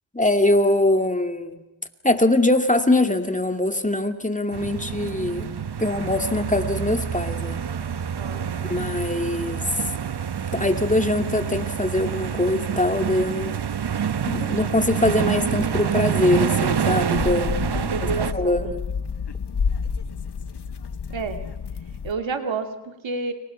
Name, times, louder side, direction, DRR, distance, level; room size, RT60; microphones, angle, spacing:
voice 1, 0.1-1.6 2.0-5.5 5.8-7.6 8.6-9.8 10.5-13.6 14.3-17.5 17.8-18.8, left 1 dB, 15° left, 7 dB, 2.4 m, -22 dB
sound 1, 4.5-18.3, right 7 dB, 60° right, 1.1 m, -27 dB
voice 2, 8.1-8.9 17.7-18.7 21.1-21.4 22.0-23.3, right 4 dB, 85° right, 6 dB, 2.4 m, -30 dB
sound 2, 17.1-22.1, left 6 dB, 60° left, 1.4 m, -29 dB
30.0 x 26.5 x 5.7 m, 0.98 s
cardioid pair, 55°, 45 cm